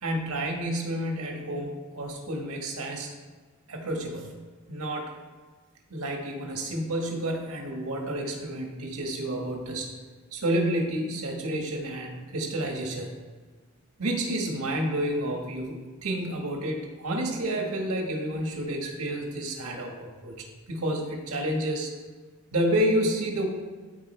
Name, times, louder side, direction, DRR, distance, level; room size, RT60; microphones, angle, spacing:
voice 1, 0.0-3.1 3.7-4.3 4.7-5.1 5.9-9.9 10.3-13.2 14.0-21.9 22.5-23.5, right 1 dB, 85° right, 1 dB, 1.6 m, -30 dB
13.5 x 4.6 x 3.3 m, 1.5 s
head